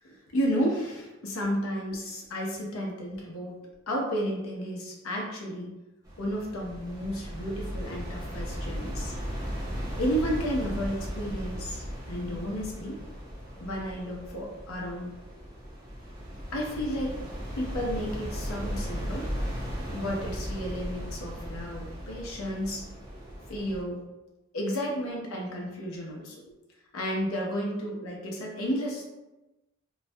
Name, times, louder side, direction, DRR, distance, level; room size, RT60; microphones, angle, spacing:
voice 1, 0.0-3.6 3.9-5.7 6.2-9.1 10.0-13.0 13.6-15.2 16.5-17.2 17.5-19.3 19.9-22.8 23.5-24.0 24.5-26.4 26.9-29.0, equal, 85° left, -2 dB, 0.5 m, -32 dB
sound 1, 6.0-23.8, equal, 15° right, 0.4 m, -37 dB
2.2 x 2.1 x 2.6 m, 1.0 s
head